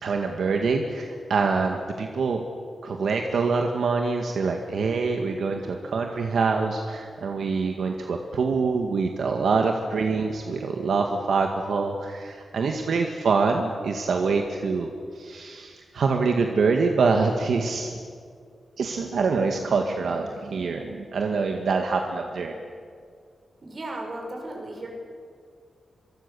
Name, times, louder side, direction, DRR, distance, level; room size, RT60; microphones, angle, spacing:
voice 1, 0.0-2.4 2.8-14.9 15.2-18.0 18.8-22.6, right 4 dB, 70° right, 3 dB, 1.9 m, -25 dB
voice 2, 23.6-24.9, right 1 dB, 35° right, 1 dB, 6.2 m, -35 dB
26.5 x 24.0 x 7.1 m, 2.1 s
wide cardioid pair, 155°, 0 cm